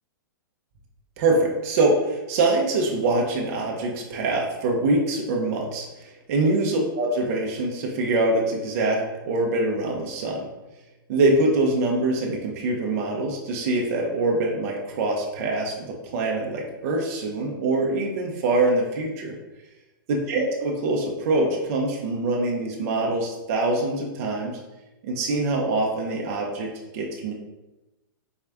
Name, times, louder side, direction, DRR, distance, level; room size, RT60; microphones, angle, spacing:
voice 1, 1.2-10.5 11.1-19.4 20.1-24.6 25.0-27.3, right 2 dB, 45° right, -1 dB, 0.7 m, -24 dB
4.4 x 2.4 x 3.4 m, 1.0 s
hypercardioid pair, 155°, 12 cm